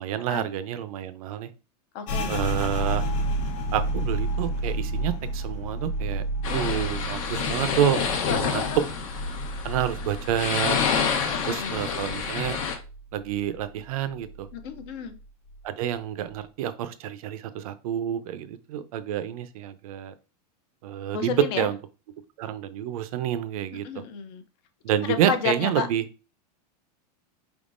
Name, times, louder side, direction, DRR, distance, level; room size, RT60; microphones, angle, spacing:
voice 1, 0.0-1.5 2.3-3.0 3.7-8.0 8.3-8.6 9.6-10.8 11.5-12.6 13.1-14.5 15.6-20.1 20.8-21.8 22.4-24.0 24.8-26.0, right 10 dB, 60° right, 12 dB, 0.5 m, -28 dB
voice 2, 1.9-2.3 6.5-6.6 8.3-8.9 11.3-11.8 14.5-15.2 21.1-21.7 23.8-24.4 25.0-25.9, left 8 dB, 40° left, 9 dB, 0.5 m, -31 dB
sound 1, 2.1-11.5 11.8-13.0 13.3-13.8 14.2-14.8, right 1 dB, 80° left, 1.0 m, -31 dB
sound 2, 6.4-12.8, left 6 dB, 55° left, 0.9 m, -28 dB
4.7 x 3.5 x 2.5 m, 0.33 s
supercardioid pair, 165°, 21 cm